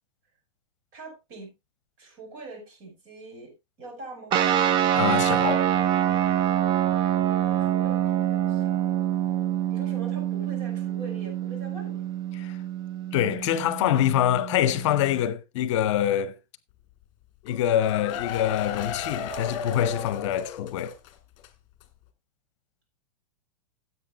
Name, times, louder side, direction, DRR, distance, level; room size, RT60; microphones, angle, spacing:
voice 1, 0.9-1.5 2.0-3.5 3.8-4.4 7.3-8.8 9.7-12.0, right 2 dB, 45° right, 5.7 m, -43 dB
sound 1, 4.3-15.2, right 11 dB, 25° right, 0.5 m, -26 dB
voice 2, 4.9-5.7 12.4-12.6 13.1-16.3 17.5-21.0, left 11 dB, 60° left, 0.9 m, -25 dB
sound 2, 17.5-21.1 21.4-21.5 21.8-21.9, left 6 dB, 40° left, 1.9 m, -34 dB
16.0 x 8.2 x 2.4 m
supercardioid pair, 150°, 18 cm